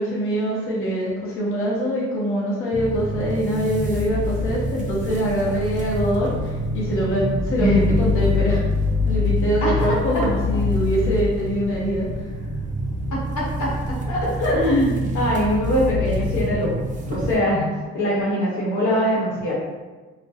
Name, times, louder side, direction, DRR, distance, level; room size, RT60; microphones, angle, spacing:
voice 1, 0.0-8.6 9.1-12.1, right 1 dB, 45° left, -6 dB, 0.7 m, -24 dB
sound 1, 2.7-17.4, left 2 dB, 25° right, 0.4 m, -25 dB
voice 2, 9.6-10.2 13.1-19.5, equal, 75° left, -5 dB, 0.9 m, -23 dB
2.3 x 2.1 x 2.6 m, 1.3 s
cardioid pair, 90°, 30 cm